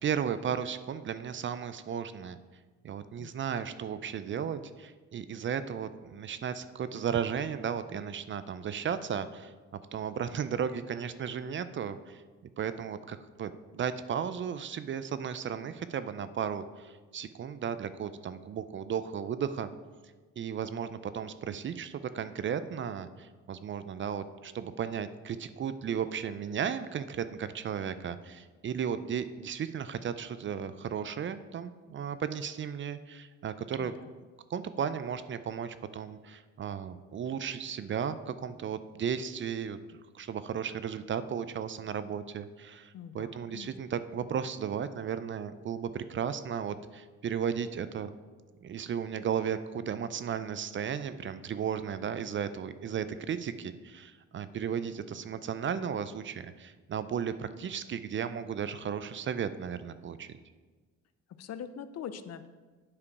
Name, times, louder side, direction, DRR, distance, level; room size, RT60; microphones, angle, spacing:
voice 1, 0.0-2.4 2.8-9.5 9.9-12.2 12.6-19.7 20.4-33.9 34.5-39.8 40.1-48.1 48.6-60.3, right 8 dB, 40° right, 12 dB, 0.4 m, -35 dB
voice 2, 42.9-43.7 61.4-62.5, left 8 dB, 55° left, 11 dB, 0.5 m, -43 dB
8.5 x 4.9 x 4.7 m, 1.4 s
cardioid pair, 90°, 30 cm